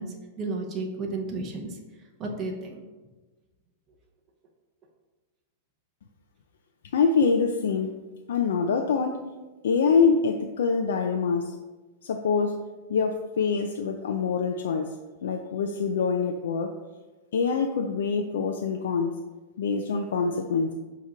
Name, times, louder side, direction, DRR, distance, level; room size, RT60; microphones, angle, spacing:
voice 1, 0.0-1.8 2.2-2.8, right 3 dB, 20° right, 0 dB, 0.8 m, -33 dB
voice 2, 6.9-7.9 8.3-9.2 9.6-11.6 12.0-12.6 12.9-14.9 15.2-16.7 17.3-19.1 19.6-20.7, left 5 dB, 85° left, 4 dB, 0.5 m, -25 dB
7.3 x 2.9 x 5.0 m, 1.2 s
supercardioid pair, 170°, 0 cm